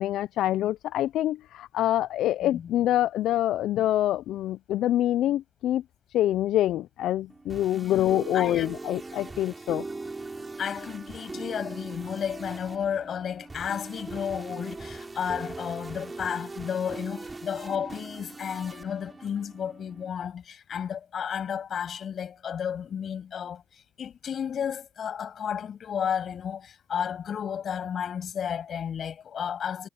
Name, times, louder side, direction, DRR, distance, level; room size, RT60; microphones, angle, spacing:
voice 1, 0.0-5.8 6.1-9.9, left 13 dB, 80° left, 0.3 m, -26 dB
sound 1, 7.3-20.1, right 3 dB, 25° right, 6.2 m, -40 dB
voice 2, 7.7-8.7 10.6-23.6 24.0-29.9, left 8 dB, 55° left, 6.8 m, -32 dB
cardioid pair, 90°, 0 cm